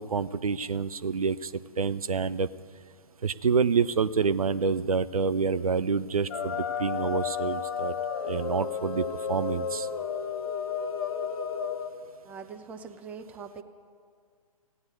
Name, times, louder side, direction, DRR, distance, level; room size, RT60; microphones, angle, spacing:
voice 1, 0.0-2.5 3.2-7.9 8.2-9.9, right 5 dB, 75° right, 15 dB, 0.5 m, -27 dB
sound 1, 6.3-11.9, left 7 dB, 40° left, 1.0 m, -32 dB
voice 2, 12.2-13.6, right 6 dB, 5° right, 7 dB, 0.4 m, -42 dB
16.0 x 9.5 x 7.8 m, 2.1 s
figure-of-eight pair, 130°, 19 cm